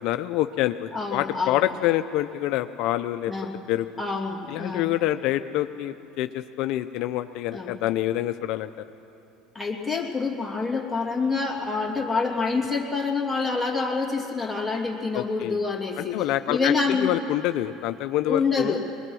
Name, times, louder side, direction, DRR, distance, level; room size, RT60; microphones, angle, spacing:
voice 1, 0.0-3.3 3.7-3.9 4.5-8.8 15.1-15.6 16.0-18.8, left 14 dB, 65° left, 9 dB, 0.5 m, -26 dB
voice 2, 0.9-1.6 3.3-3.5 4.0-4.9 7.5-7.8 9.5-16.2 16.5-17.2 18.3-18.8, left 4 dB, 5° left, -2 dB, 2.8 m, -27 dB
21.5 x 21.0 x 6.3 m, 2.8 s
supercardioid pair, 110°, 0 cm